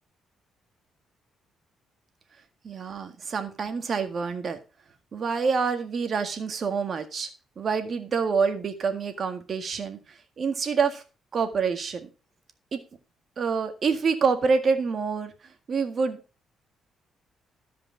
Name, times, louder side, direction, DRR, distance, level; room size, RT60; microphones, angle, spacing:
voice 1, 2.6-4.6 5.1-7.3 7.6-10.0 10.4-11.0 11.3-12.1 12.7-12.8 13.4-15.3 15.7-16.2, right 5 dB, 50° right, 8 dB, 1.7 m, -26 dB
13.0 x 5.2 x 5.0 m, 0.32 s
cardioid pair, 90°, 0 cm